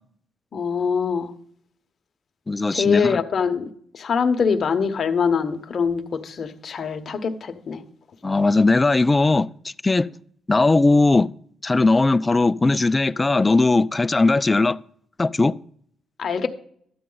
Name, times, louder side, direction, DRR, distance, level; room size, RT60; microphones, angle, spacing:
voice 1, 0.5-1.3 2.7-3.7 3.9-7.8 16.2-16.5, left 6 dB, 50° left, 1.0 m, -23 dB
voice 2, 2.5-3.2 8.2-10.1 10.5-11.3 11.6-14.8 15.2-15.5, left 3 dB, 20° left, 0.3 m, -19 dB
12.5 x 8.5 x 3.9 m
cardioid pair, 90°, 0 cm